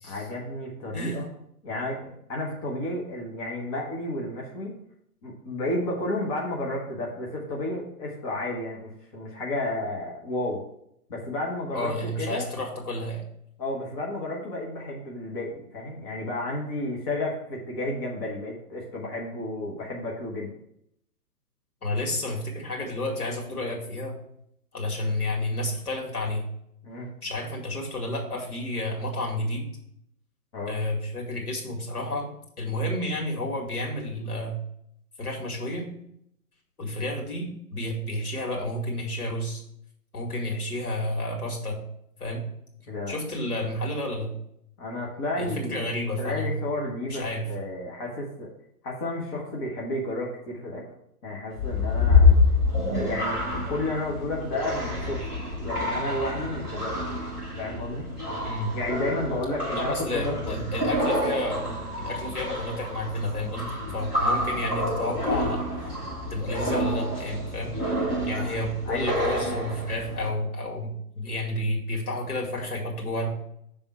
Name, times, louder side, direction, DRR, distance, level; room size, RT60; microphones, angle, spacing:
voice 1, 0.0-1.3 1.6-4.7 5.2-10.6 11.1-12.5 13.6-20.5 25.0-25.1 26.8-27.1 30.5-30.8 42.9-43.2 44.8-45.9 46.2-48.5 48.8-50.8 51.2-52.4 52.9-55.2 55.6-57.0 57.6-58.1 58.7-60.6 67.9-68.6 68.8-69.1, left 1 dB, 25° left, -2 dB, 1.0 m, -32 dB
voice 2, 0.9-1.2 11.7-13.2 21.8-24.1 24.7-26.4 27.2-29.7 30.7-32.3 32.6-34.6 35.2-35.9 36.8-39.6 40.1-41.8 42.2-42.4 43.1-44.3 45.4-46.5 47.1-47.4 58.4-58.7 59.7-61.6 62.0-65.9 66.3-67.7 68.3-73.3, left 1 dB, 70° left, -1 dB, 2.2 m, -30 dB
sound 1, 51.5-70.3, left 2 dB, 5° left, 0.4 m, -27 dB
6.7 x 3.5 x 5.6 m, 0.74 s
figure-of-eight pair, 130°, 46 cm